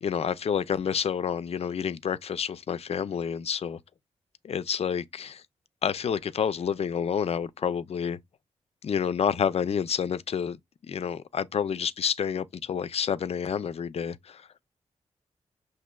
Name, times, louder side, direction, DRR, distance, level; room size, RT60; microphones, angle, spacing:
voice 1, 0.0-3.8 4.4-5.4 5.8-8.2 8.8-10.6 10.9-14.5, left 7 dB, 55° left, 0.4 m, -29 dB
6.0 x 2.7 x 2.2 m
cardioid pair, 45°, 12 cm